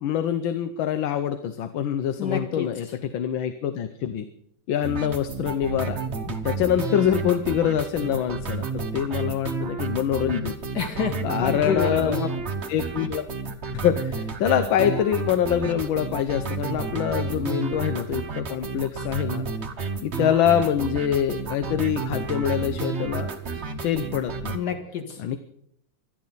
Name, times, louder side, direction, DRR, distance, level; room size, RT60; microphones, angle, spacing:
voice 1, 0.0-4.2 4.7-6.0 6.3-10.6 11.2-12.3 12.7-13.2 13.8-19.5 20.0-24.6 25.2-25.4, left 10 dB, 85° left, 9 dB, 1.6 m, -25 dB
voice 2, 2.2-2.7 10.7-12.2 24.5-25.2, left 6 dB, 60° left, 5 dB, 2.4 m, -28 dB
sound 1, 4.8-24.6, right 4 dB, 40° right, 1.2 m, -31 dB
26.0 x 12.0 x 4.0 m, 0.73 s
omnidirectional pair, 2.1 m